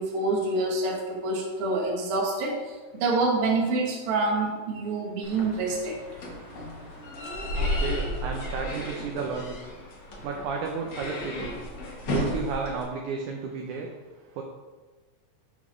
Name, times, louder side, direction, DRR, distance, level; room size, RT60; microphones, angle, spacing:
voice 1, 0.0-6.0, right 3 dB, 65° right, -1 dB, 1.4 m, -27 dB
sound 1, 5.2-12.8, left 1 dB, 85° left, 1.0 m, -33 dB
voice 2, 7.5-9.6 10.2-11.6 12.1-13.9 14.3-14.4, right 5 dB, 85° right, 1 dB, 1.7 m, -32 dB
11.0 x 3.9 x 3.1 m, 1.3 s
omnidirectional pair, 4.2 m